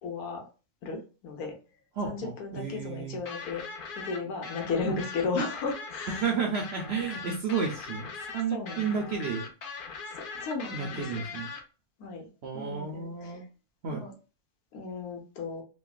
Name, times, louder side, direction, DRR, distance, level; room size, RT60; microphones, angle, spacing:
voice 1, 0.0-0.5 0.8-1.6 2.0-3.6 4.0-6.2 7.1-7.2 8.5-8.9 10.1-11.1 12.0-12.3 12.5-13.4 13.9-14.1 14.7-15.6, left 4 dB, 90° left, 2 dB, 1.3 m, -35 dB
voice 2, 2.0-3.2 4.9-5.0 6.2-9.5 10.7-11.5 12.4-13.4 13.8-14.0, right 5 dB, 65° right, 2 dB, 0.6 m, -32 dB
sound 1, 3.3-11.6, left 5 dB, 65° left, 0.5 m, -40 dB
3.1 x 2.1 x 2.3 m, 0.33 s
omnidirectional pair, 1.5 m